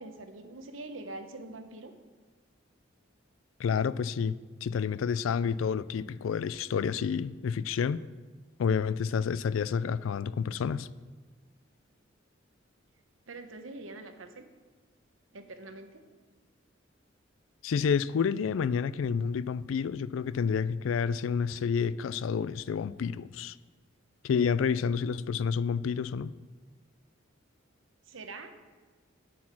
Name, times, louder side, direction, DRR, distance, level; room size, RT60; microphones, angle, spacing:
voice 1, 0.0-1.9 13.3-14.5 15.3-16.1 28.1-28.6, right 2 dB, 80° right, 0.9 m, -44 dB
voice 2, 3.6-8.0 8.6-10.9 17.6-23.6 24.2-26.3, left 6 dB, 80° left, 0.3 m, -29 dB
8.5 x 8.4 x 5.9 m
head